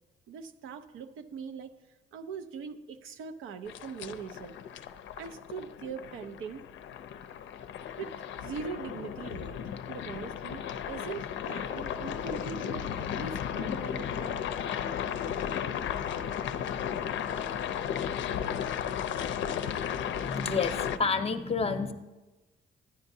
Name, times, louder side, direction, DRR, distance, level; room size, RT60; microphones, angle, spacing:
voice 1, 0.3-1.7 2.1-4.6 5.2-6.6 8.0-8.1 8.4-9.6 9.9-14.4, right 6 dB, 85° right, 9 dB, 0.6 m, -41 dB
sound 1, 3.7-21.0, left 8 dB, 70° left, 0.5 m, -35 dB
voice 2, 20.0-21.9, left 4 dB, 30° left, 8 dB, 0.6 m, -30 dB
10.5 x 9.7 x 2.7 m, 1.1 s
cardioid pair, 90°, 20 cm